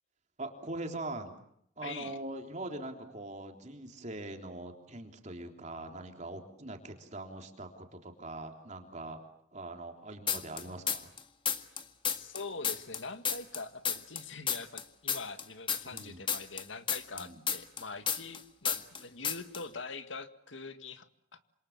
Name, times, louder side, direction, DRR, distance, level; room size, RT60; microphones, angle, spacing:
voice 1, 0.4-1.3 1.8-9.2 9.5-11.1 15.9-16.2 17.1-17.4, right 2 dB, 40° right, 4 dB, 3.4 m, -42 dB
voice 2, 1.8-2.2 12.2-21.4, left 4 dB, 85° left, 10 dB, 1.9 m, -44 dB
sound 1, 10.3-11.2 11.5-14.2 14.5-18.4 18.6-19.0 19.2-19.6, left 7 dB, 25° left, 1.8 m, -32 dB
27.0 x 27.0 x 7.4 m, 0.71 s
head